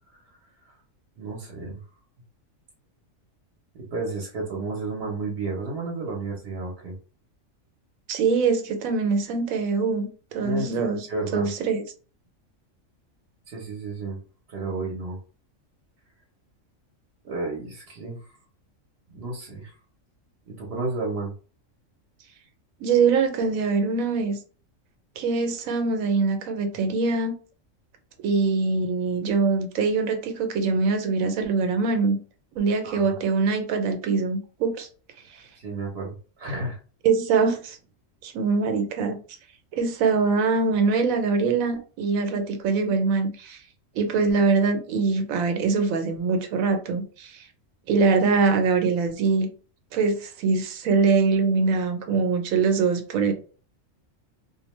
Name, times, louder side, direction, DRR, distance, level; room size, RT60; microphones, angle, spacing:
voice 1, 1.2-1.8 3.9-6.9 10.4-11.5 13.5-14.2 14.5-15.2 17.2-18.3 19.1-19.7 20.5-21.3 32.8-33.2 35.6-36.1 36.4-36.8, right 3 dB, 55° right, 0.8 m, -32 dB
voice 2, 8.1-11.0 11.3-11.8 22.8-24.3 25.2-27.3 28.2-32.2 32.6-34.9 35.3-35.4 37.0-37.8 38.2-39.1 39.7-43.6 43.9-47.5 47.9-49.5 49.9-53.3, right 4 dB, 85° right, 1.0 m, -23 dB
2.6 x 2.1 x 3.0 m
omnidirectional pair, 1.4 m